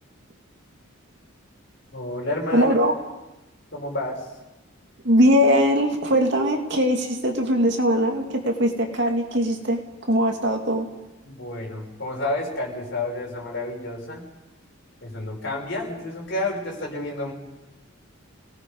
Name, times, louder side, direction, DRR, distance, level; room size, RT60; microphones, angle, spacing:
voice 1, 1.9-2.7 3.7-4.2 11.2-14.2 15.0-17.3, left 2 dB, 55° left, -1 dB, 6.0 m, -30 dB
voice 2, 2.5-2.9 5.0-9.8 10.1-10.9, equal, 55° right, 2 dB, 2.4 m, -20 dB
28.5 x 18.5 x 5.4 m, 1.0 s
head